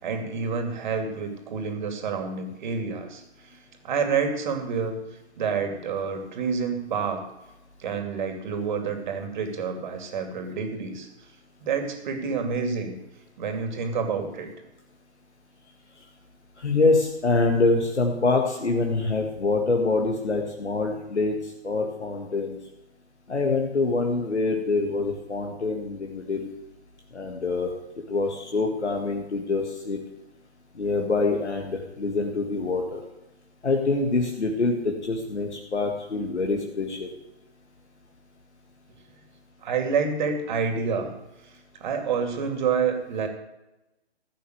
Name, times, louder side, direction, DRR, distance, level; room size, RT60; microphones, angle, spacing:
voice 1, 0.0-3.2 3.8-5.0 5.4-7.2 7.8-11.1 11.6-12.9 13.4-14.5 39.6-41.1 41.8-43.3, right 5 dB, 45° right, 5 dB, 2.6 m, -28 dB
voice 2, 16.6-22.6 23.3-26.4 27.1-27.7 28.1-30.0 30.8-33.0 33.6-37.1, left 3 dB, 85° left, 2 dB, 1.9 m, -25 dB
15.0 x 6.7 x 7.9 m, 0.97 s
figure-of-eight pair, 140°, 33 cm